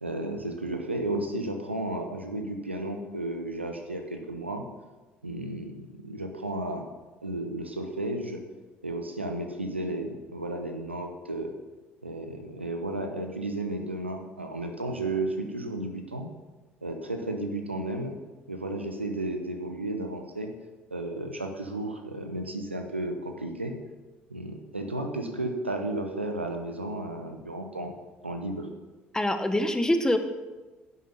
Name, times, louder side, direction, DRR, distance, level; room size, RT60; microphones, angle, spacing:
voice 1, 0.0-4.6 5.2-6.9 7.2-8.4 8.8-11.5 12.0-16.3 16.8-18.2 18.5-20.5 20.9-23.7 24.3-27.9 28.2-28.7, right 2 dB, 90° right, 5 dB, 0.9 m, -33 dB
voice 2, 29.1-30.2, left 1 dB, 10° left, 8 dB, 1.2 m, -24 dB
10.5 x 8.1 x 5.6 m, 1.2 s
figure-of-eight pair, 55°, 6 cm